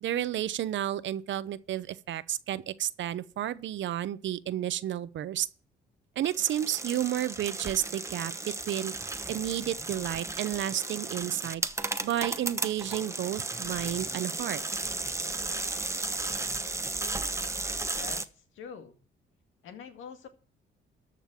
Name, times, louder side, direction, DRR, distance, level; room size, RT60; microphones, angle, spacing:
voice 1, 0.0-5.5 6.2-8.9 9.3-11.6 12.0-14.6, right 12 dB, 70° right, 0.8 m, -31 dB
sound 1, 6.2-18.2, right 2 dB, 15° right, 1.0 m, -34 dB
voice 2, 18.5-19.0 19.6-20.3, left 6 dB, 80° left, 2.0 m, -44 dB
13.5 x 5.4 x 7.6 m
cardioid pair, 90°, 20 cm